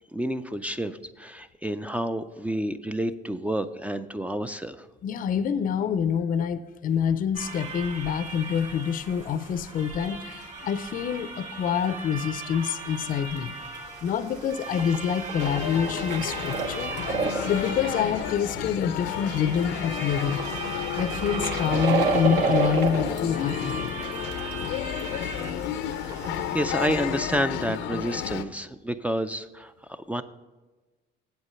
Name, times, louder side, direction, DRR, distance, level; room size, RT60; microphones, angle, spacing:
voice 1, 0.1-4.9 25.9-30.2, right 1 dB, 5° right, 11 dB, 0.4 m, -30 dB
voice 2, 5.0-13.5 14.0-16.9 17.4-20.4 21.0-23.9, left 8 dB, 45° left, 13 dB, 0.5 m, -27 dB
sound 1, 7.3-25.5, right 4 dB, 35° right, 2.4 m, -39 dB
sound 2, 12.6-12.7 13.0-13.1 13.4-13.5 13.7-18.6 19.0-24.8 25.1-26.7, right 5 dB, 65° right, 1.3 m, -31 dB
sound 3, 15.4-28.4, left 10 dB, 90° left, 0.6 m, -32 dB
8.1 x 8.0 x 5.6 m, 1.2 s
cardioid pair, 115°, 19 cm